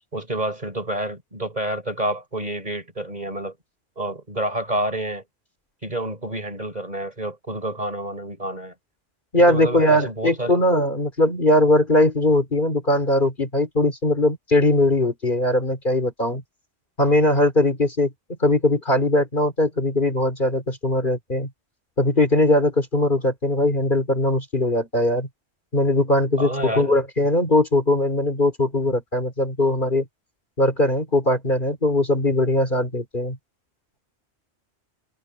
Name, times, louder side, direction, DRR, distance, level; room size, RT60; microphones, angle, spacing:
voice 1, 0.1-3.6 4.0-5.2 5.8-8.7 9.4-10.6 26.4-26.9, right 1 dB, 40° right, 5.3 m, -28 dB
voice 2, 9.3-16.4 17.0-18.1 18.4-21.5 22.0-25.3 25.7-30.1 30.6-33.4, left 1 dB, 50° left, 3.5 m, -20 dB
omnidirectional pair, 1.1 m